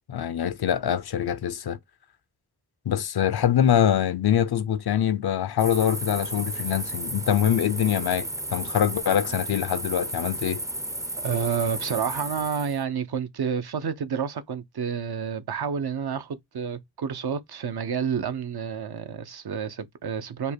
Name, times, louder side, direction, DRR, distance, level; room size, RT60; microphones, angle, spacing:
voice 1, 0.0-1.8 2.9-10.6, left 9 dB, 65° left, 0.6 m, -24 dB
sound 1, 5.6-12.8, right 1 dB, 10° right, 0.4 m, -33 dB
voice 2, 11.2-20.5, right 7 dB, 65° right, 0.7 m, -29 dB
5.1 x 2.2 x 4.3 m
wide cardioid pair, 85°, 41 cm